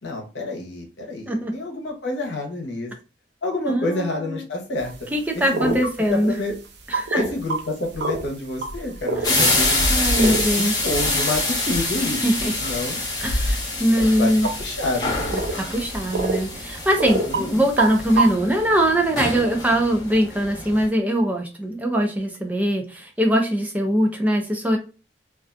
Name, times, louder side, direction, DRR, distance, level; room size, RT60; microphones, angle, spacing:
voice 1, 0.0-2.9 3.4-4.9 5.5-5.8 6.1-6.5 7.1-9.8 10.2-13.0 14.0-15.2 17.3-17.7, left 2 dB, 75° left, 1 dB, 0.8 m, -28 dB
voice 2, 3.7-4.4 5.1-6.4 6.9-7.2 9.2-9.5 9.9-10.8 12.2-12.5 13.2-14.5 15.3-24.8, equal, 10° right, 2 dB, 0.4 m, -22 dB
sound 1, 4.8-4.9 5.5-6.0 6.9-7.6 7.9-8.3 8.6-16.4 16.8-17.4 17.8-18.3, right 2 dB, 65° right, 0.5 m, -26 dB
sound 2, 9.2-20.9, left 2 dB, 20° left, 0.7 m, -26 dB
2.4 x 2.2 x 2.4 m, 0.35 s
head